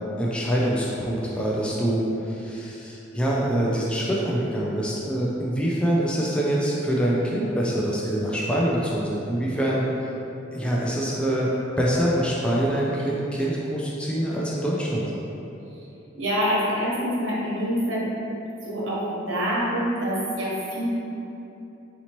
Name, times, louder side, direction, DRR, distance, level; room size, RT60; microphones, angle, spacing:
voice 1, 0.2-9.8 10.5-15.1, right 1 dB, 5° left, -5 dB, 0.3 m, -25 dB
voice 2, 16.2-18.1 18.6-20.9, equal, 80° right, -6 dB, 1.0 m, -26 dB
4.0 x 2.8 x 3.0 m, 3.0 s
head